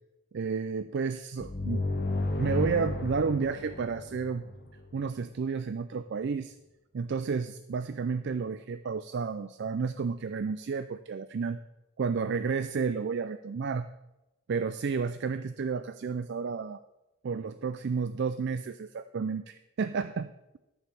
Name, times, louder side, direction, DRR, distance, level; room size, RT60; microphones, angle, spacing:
voice 1, 0.3-1.8 2.4-4.4 4.9-6.5 6.9-11.6 12.0-13.9 14.5-16.8 17.2-20.3, right 5 dB, 50° right, 11 dB, 0.4 m, -31 dB
sound 1, 1.4-5.0, left 2 dB, 45° left, 1.1 m, -33 dB
13.0 x 4.7 x 7.0 m, 0.95 s
head